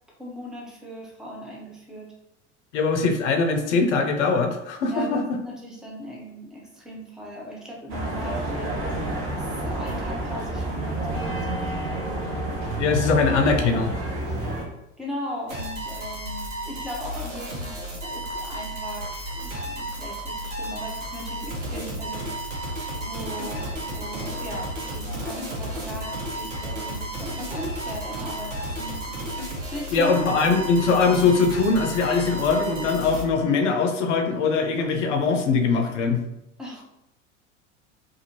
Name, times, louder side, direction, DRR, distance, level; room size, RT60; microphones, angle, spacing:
voice 1, 0.2-2.1 4.9-8.7 9.3-12.3 15.0-22.3 23.0-30.6 36.6-36.8, equal, ahead, -3 dB, 0.7 m, -38 dB
voice 2, 2.7-5.2 12.8-13.9 29.9-36.2, left 4 dB, 70° left, 4 dB, 0.6 m, -21 dB
sound 1, 7.9-14.6, right 1 dB, 35° right, 0.9 m, -29 dB
sound 2, 15.5-33.2, right 1 dB, 75° right, 1.0 m, -33 dB
sound 3, 17.3-17.9 18.2-18.5 19.0-20.2 20.4-20.7 21.0-21.3 21.7-21.8 22.2-22.9 23.3-26.3 26.5-27.3 27.5-28.2 28.4-29.3 29.8-30.3 30.6-30.8 31.2-31.7 32.0-32.1 32.3-32.6 32.9-33.1 33.4-34.8, left 7 dB, 35° left, 0.8 m, -45 dB
2.6 x 2.5 x 2.9 m, 0.86 s
figure-of-eight pair, 75°, 37 cm